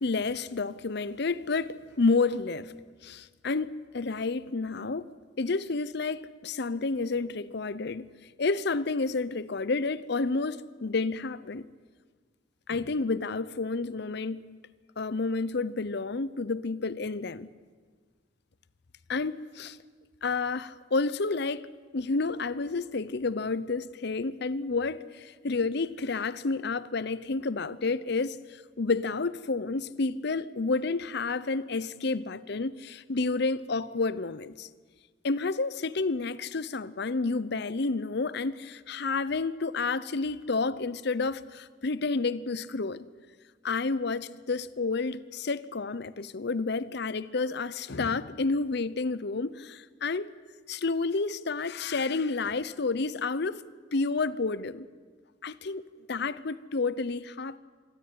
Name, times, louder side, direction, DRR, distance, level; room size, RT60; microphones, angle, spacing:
voice 1, 0.0-2.7 3.0-5.1 5.4-8.1 8.4-11.6 12.7-14.6 15.0-17.5 19.1-19.8 20.2-21.7 21.9-34.7 35.2-43.1 43.6-50.3 50.7-53.6 53.9-54.9 55.4-57.6, left 3 dB, 65° left, 0.7 m, -30 dB
25.5 x 13.0 x 9.8 m
head